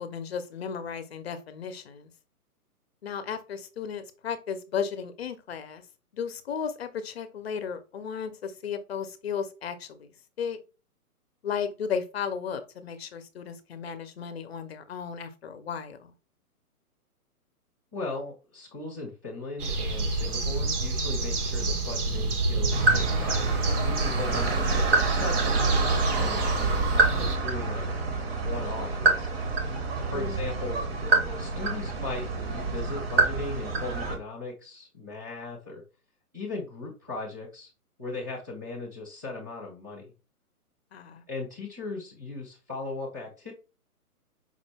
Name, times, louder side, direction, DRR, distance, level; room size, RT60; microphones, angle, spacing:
voice 1, 0.0-2.1 3.0-5.8 6.1-10.1 10.4-10.6 11.4-16.1 30.1-30.5 40.9-41.2, left 7 dB, 45° left, 10 dB, 0.6 m, -34 dB
voice 2, 17.9-23.5 23.8-27.9 28.3-29.4 30.1-30.8 31.3-35.8 36.3-37.7 38.0-40.1 41.3-43.5, left 3 dB, 15° right, -7 dB, 0.4 m, -38 dB
sound 1, 19.6-27.4, right 3 dB, 75° right, 1.1 m, -28 dB
sound 2, 22.7-34.2, right 3 dB, 40° right, 0.8 m, -27 dB
4.8 x 2.1 x 3.3 m, 0.32 s
hypercardioid pair, 155°, 45 cm